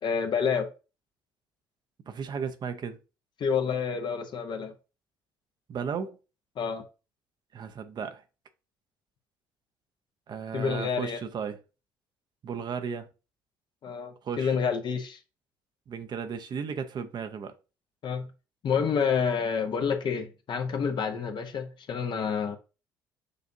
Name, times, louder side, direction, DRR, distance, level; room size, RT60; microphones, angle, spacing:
voice 1, 0.0-0.7 3.4-4.7 6.6-6.8 10.5-11.2 13.8-15.2 18.0-18.3 18.6-22.6, left 6 dB, 50° left, 0.8 m, -28 dB
voice 2, 2.1-3.0 5.7-6.2 7.5-8.2 10.3-11.6 12.4-13.1 14.2-14.6 15.9-17.5, right 6 dB, 45° right, 0.6 m, -34 dB
6.5 x 2.5 x 2.7 m
hypercardioid pair, 55°, 10 cm